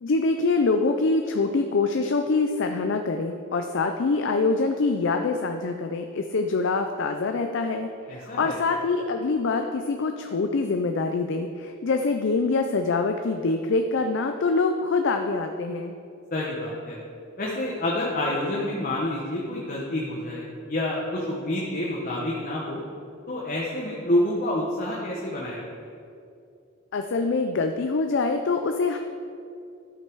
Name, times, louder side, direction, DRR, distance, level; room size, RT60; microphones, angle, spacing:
voice 1, 0.0-15.9 26.9-29.0, left 3 dB, 60° left, 5 dB, 0.5 m, -25 dB
voice 2, 8.1-8.5 16.3-17.0 17.4-22.8 23.3-25.6, left 1 dB, 40° left, -4 dB, 1.2 m, -28 dB
13.0 x 5.7 x 4.7 m, 2.5 s
head